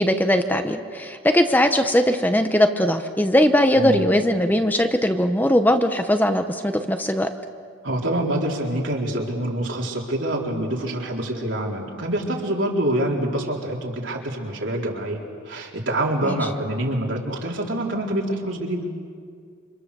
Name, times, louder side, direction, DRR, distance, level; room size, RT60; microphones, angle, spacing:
voice 1, 0.0-7.3 16.2-16.3, equal, 10° left, 7 dB, 0.9 m, -20 dB
voice 2, 3.7-4.1 7.8-15.2 15.5-18.8, right 1 dB, 70° right, -1 dB, 4.0 m, -26 dB
28.5 x 26.0 x 6.9 m, 2.1 s
head